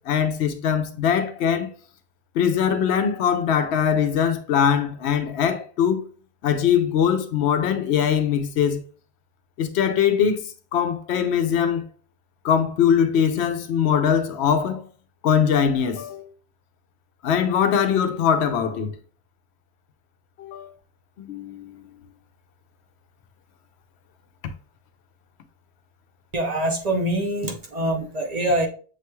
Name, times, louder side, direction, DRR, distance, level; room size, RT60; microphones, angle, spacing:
voice 1, 0.0-1.7 2.3-6.0 6.4-8.8 9.6-10.4 10.7-11.8 12.4-14.8 15.2-16.3 17.2-18.9 20.4-20.7 21.2-21.9, left 8 dB, 80° left, 0.9 m, -21 dB
voice 2, 26.3-28.7, right 1 dB, 45° right, 0.7 m, -24 dB
6.6 x 3.0 x 2.2 m
omnidirectional pair, 1.1 m